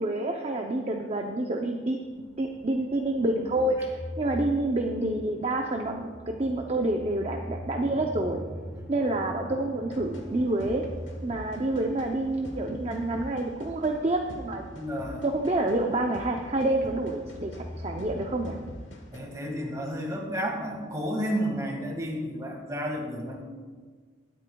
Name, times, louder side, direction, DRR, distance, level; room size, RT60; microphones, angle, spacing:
voice 1, 0.0-2.0 2.4-8.4 8.9-10.8 11.2-14.6 15.2-18.6, right 2 dB, 35° right, 2 dB, 0.6 m, -28 dB
sound 1, 2.0-18.7, equal, ahead, 0.9 m, -43 dB
sound 2, 9.9-19.2, equal, 70° left, 1.4 m, -45 dB
voice 2, 14.7-15.2 19.1-23.4, equal, 15° right, 1 dB, 1.8 m, -32 dB
21.5 x 8.5 x 2.3 m, 1.5 s
head